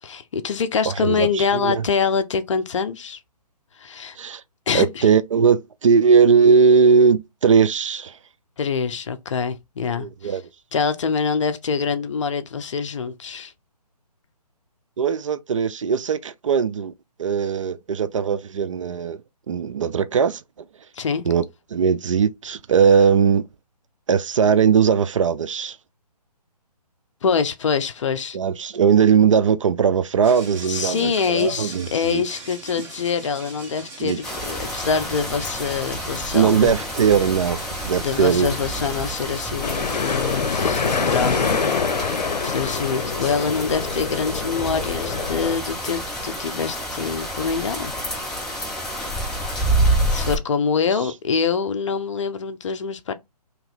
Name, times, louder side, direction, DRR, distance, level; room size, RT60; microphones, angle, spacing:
voice 1, 0.0-3.2 3.8-4.2 4.7-5.1 8.6-10.4 10.7-13.5 20.9-21.3 27.2-28.4 30.7-36.7 37.9-47.9 50.1-53.1, left 6 dB, 50° left, 0.6 m, -25 dB
voice 2, 0.9-1.8 4.2-4.4 4.7-8.2 9.9-10.4 15.0-16.9 17.2-19.2 19.5-20.4 21.3-21.4 21.7-23.5 24.1-25.8 28.3-32.2 34.0-34.2 36.3-37.6 37.8-38.6 50.8-50.9, right 6 dB, 50° right, 0.4 m, -19 dB
sound 1, 30.2-39.4, right 3 dB, 10° right, 1.1 m, -42 dB
sound 2, 34.2-50.4, right 1 dB, 5° left, 0.6 m, -28 dB
sound 3, 39.6-45.6, left 5 dB, 90° left, 0.6 m, -25 dB
3.0 x 2.9 x 3.9 m
hypercardioid pair, 150°, 21 cm